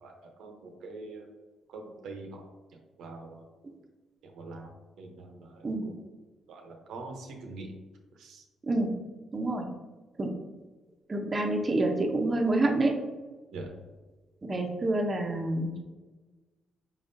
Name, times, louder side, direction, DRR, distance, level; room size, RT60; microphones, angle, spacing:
voice 1, 0.0-1.3 1.7-2.5 3.0-3.4 4.2-4.7 5.0-6.0 6.5-7.7 8.1-8.4 13.5-13.9, right 3 dB, 80° right, 3 dB, 0.7 m, -44 dB
voice 2, 9.3-9.7 10.2-10.3 11.1-12.9 14.4-15.8, right 2 dB, 30° right, 2 dB, 0.6 m, -27 dB
4.8 x 3.5 x 2.6 m, 1.2 s
cardioid pair, 90°, 0 cm